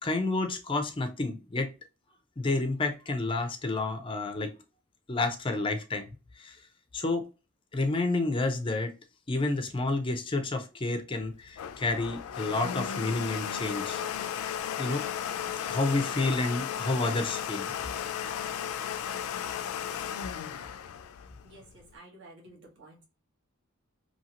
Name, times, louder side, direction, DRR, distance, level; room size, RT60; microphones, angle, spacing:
voice 1, 0.0-1.7 2.4-4.5 5.1-6.1 6.4-6.6 6.9-7.3 7.7-8.9 9.3-14.0 14.8-15.0 15.7-17.7, left 2 dB, 25° left, 0.4 m, -30 dB
Domestic sounds home sounds, 11.2-21.9, left 9 dB, 90° left, 0.3 m, -35 dB
voice 2, 21.4-23.0, right 2 dB, 55° right, 1.1 m, -52 dB
2.8 x 2.7 x 2.7 m
head